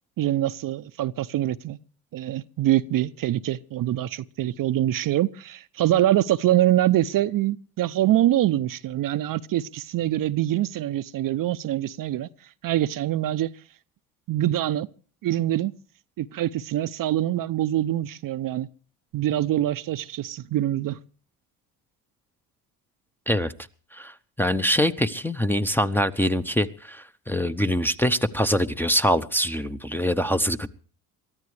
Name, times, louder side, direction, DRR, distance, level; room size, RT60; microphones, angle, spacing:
voice 1, 0.2-1.8 2.1-12.3 12.6-13.5 14.3-14.9 15.2-15.7 16.2-18.7 19.1-21.0, right 13 dB, 45° right, 0.7 m, -24 dB
voice 2, 23.9-30.7, equal, 5° left, 0.7 m, -24 dB
23.0 x 14.0 x 3.3 m
hypercardioid pair, 70°, 48 cm